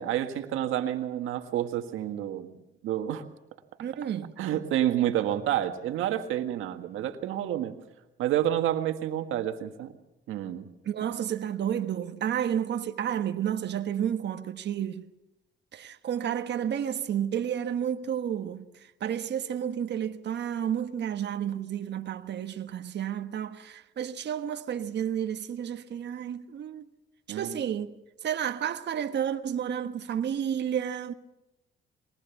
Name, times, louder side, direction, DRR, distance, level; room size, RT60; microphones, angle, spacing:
voice 1, 0.0-2.5 2.8-3.2 4.4-7.7 8.2-9.9 10.3-10.7 27.3-27.6, right 11 dB, 90° right, 1.7 m, -29 dB
voice 2, 3.8-4.3 10.8-15.1 15.7-18.6 19.0-26.8 27.3-27.9 28.2-31.1, right 9 dB, 60° right, 1.3 m, -31 dB
22.0 x 19.0 x 7.1 m
cardioid pair, 90°, 20 cm